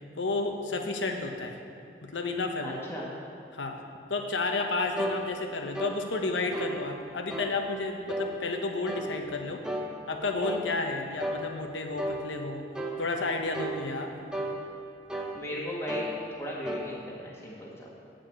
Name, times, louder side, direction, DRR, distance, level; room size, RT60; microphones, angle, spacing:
voice 1, 0.2-1.6 2.0-2.8 3.5-3.8 4.1-9.6 10.1-12.6 13.0-14.1, left 3 dB, 90° left, 4 dB, 0.9 m, -31 dB
voice 2, 2.6-3.1 15.3-17.9, equal, 15° left, -5 dB, 1.6 m, -37 dB
sound 1, 5.0-5.2 5.7-6.0 6.5-6.8 7.3-7.5 8.1-8.3 8.9-9.1 9.6-9.9 10.4-10.7 11.2-11.4 12.0-12.2 12.7-13.0 13.5-13.8 14.3-14.6 15.1-15.4 15.9-16.1 16.7-16.9, right 1 dB, 5° right, 0.7 m, -33 dB
8.7 x 5.2 x 7.5 m, 2.5 s
head